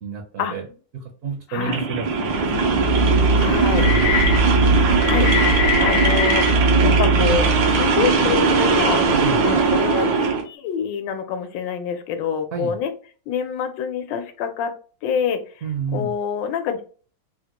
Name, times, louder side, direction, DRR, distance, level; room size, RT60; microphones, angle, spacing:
voice 1, 0.0-0.6 0.9-2.4 3.4-4.1 9.1-9.4 12.5-12.8 15.6-16.1, right 4 dB, 65° right, 2 dB, 0.7 m, -30 dB
voice 2, 1.5-1.8 3.4-3.9 5.1-9.0 9.4-12.9 13.3-14.7 15.0-15.7 15.9-16.8, left 7 dB, 80° left, 7 dB, 1.3 m, -26 dB
sound 1, 1.6-10.4, right 4 dB, 85° right, 1.5 m, -20 dB
sound 2, 2.6-7.9, right 1 dB, 65° left, 0.9 m, -20 dB
3.7 x 2.1 x 2.8 m, 0.39 s
omnidirectional pair, 2.0 m